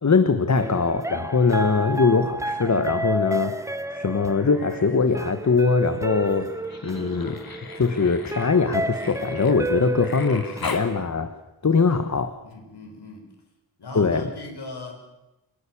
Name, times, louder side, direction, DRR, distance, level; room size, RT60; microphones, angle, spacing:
voice 1, 0.0-6.5 6.8-7.4 7.7-11.3 11.6-12.3 13.9-14.3, left 4 dB, 45° left, 9 dB, 1.5 m, -22 dB
sound 1, 0.5-11.0, right 1 dB, 5° right, 1.1 m, -31 dB
Human voice, 4.2-5.0 5.3-10.9 12.5-12.6, left 4 dB, 60° left, 2.9 m, -39 dB
voice 2, 12.4-13.3 13.8-15.0, left 2 dB, 75° left, 2 dB, 7.6 m, -38 dB
28.0 x 20.0 x 8.8 m, 0.98 s
wide cardioid pair, 120°, 40 cm